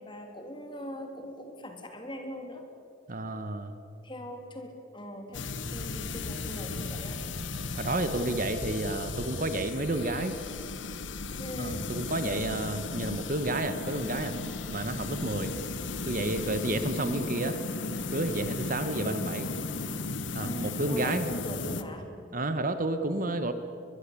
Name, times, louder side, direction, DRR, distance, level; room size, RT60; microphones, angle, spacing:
voice 1, 0.0-2.6 4.0-7.2 11.4-11.8 20.4-22.0, equal, 25° left, 4 dB, 3.0 m, -40 dB
voice 2, 3.1-3.7 7.7-10.4 11.6-14.4 14.7-15.5 16.0-17.6 18.1-19.5 20.3-21.2 22.3-23.5, right 2 dB, 40° right, 9 dB, 1.3 m, -30 dB
sound 1, 5.3-21.8, left 3 dB, 65° left, 1.3 m, -35 dB
22.5 x 22.0 x 8.5 m, 2.5 s
head